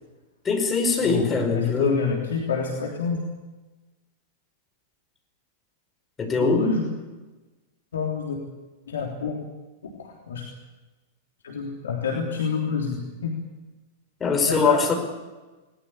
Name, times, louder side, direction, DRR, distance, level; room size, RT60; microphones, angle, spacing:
voice 1, 0.5-2.0 6.2-6.7 14.2-14.9, left 4 dB, 20° left, 4 dB, 5.3 m, -22 dB
voice 2, 1.0-3.2 6.3-6.8 7.9-8.4 8.9-9.4 10.0-10.5 11.4-13.3 14.4-14.8, left 5 dB, 70° left, 0 dB, 3.3 m, -27 dB
20.5 x 20.0 x 8.7 m, 1.2 s
figure-of-eight pair, 95°, 0 cm